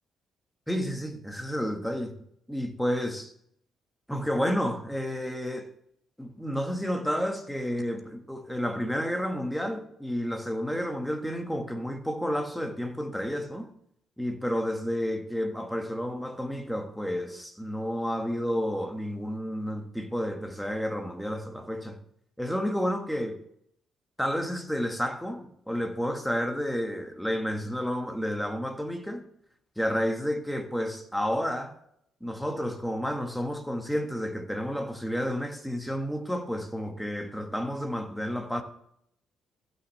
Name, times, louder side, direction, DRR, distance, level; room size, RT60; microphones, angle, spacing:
voice 1, 0.7-2.2 2.5-3.3 4.1-5.7 6.2-13.7 14.2-22.0 22.4-23.4 24.2-29.2 29.8-31.8 32.2-38.6, equal, ahead, 1.5 m, -31 dB
15.0 x 6.3 x 3.3 m
cardioid pair, 90°, 0 cm